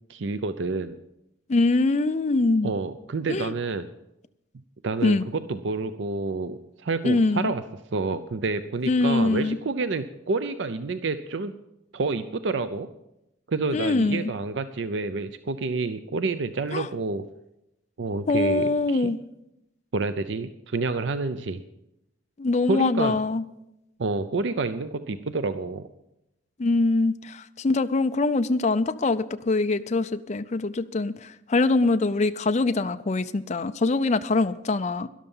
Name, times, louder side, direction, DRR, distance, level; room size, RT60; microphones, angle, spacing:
voice 1, 0.1-1.0 2.6-3.9 4.8-7.6 7.9-11.5 11.9-12.9 13.5-17.2 18.0-19.1 19.9-21.6 22.7-23.2 24.0-25.9, right 3 dB, 65° right, 11 dB, 0.5 m, -28 dB
voice 2, 1.5-2.7 3.3-3.5 5.0-5.2 7.0-7.5 8.9-9.6 13.7-14.3 16.7-16.9 18.3-19.2 22.4-23.4 26.6-35.1, left 3 dB, 35° left, 10 dB, 0.5 m, -23 dB
12.5 x 11.5 x 5.5 m, 0.86 s
head